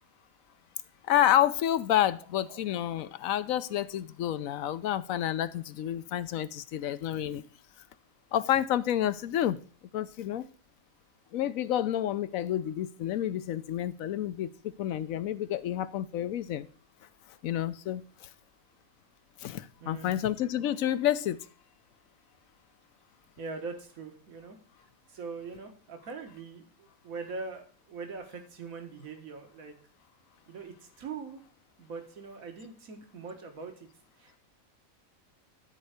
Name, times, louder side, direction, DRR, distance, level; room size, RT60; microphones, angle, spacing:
voice 1, 1.1-7.4 8.3-9.6 9.9-10.5 11.3-16.7 17.4-18.3 19.4-21.4, left 11 dB, 75° left, 15 dB, 1.1 m, -29 dB
voice 2, 19.8-20.1 23.4-24.6 25.1-29.7 30.5-31.4 31.8-33.9 34.2-34.4, right 4 dB, 75° right, 5 dB, 1.9 m, -42 dB
13.0 x 4.6 x 6.5 m, 0.42 s
omnidirectional pair, 1.5 m